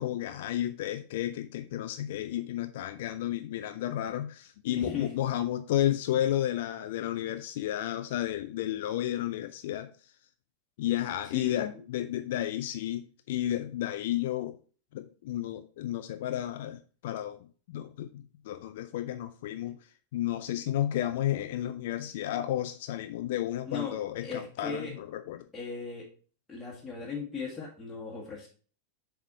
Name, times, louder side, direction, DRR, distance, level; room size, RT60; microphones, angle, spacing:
voice 1, 0.0-9.9 10.8-14.6 14.9-17.4 17.7-19.8 20.1-25.4, left 12 dB, 55° left, 0.4 m, -32 dB
voice 2, 4.8-5.1 11.3-11.5 23.7-24.9 25.5-26.1 26.5-28.5, left 5 dB, 10° left, 1.9 m, -37 dB
7.2 x 3.5 x 4.1 m
figure-of-eight pair, 90°, 0 cm